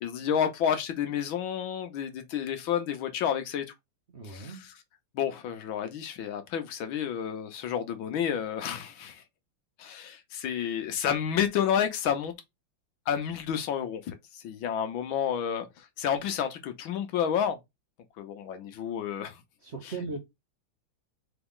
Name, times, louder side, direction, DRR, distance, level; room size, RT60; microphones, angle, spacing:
voice 1, 0.0-3.6 4.3-4.5 5.1-9.2 9.8-12.3 13.1-14.1 14.4-17.6 18.2-19.4, left 8 dB, 75° left, 1.5 m, -30 dB
voice 2, 4.1-4.6 19.6-20.2, right 3 dB, 45° right, 1.0 m, -38 dB
3.9 x 3.5 x 3.6 m
omnidirectional pair, 2.3 m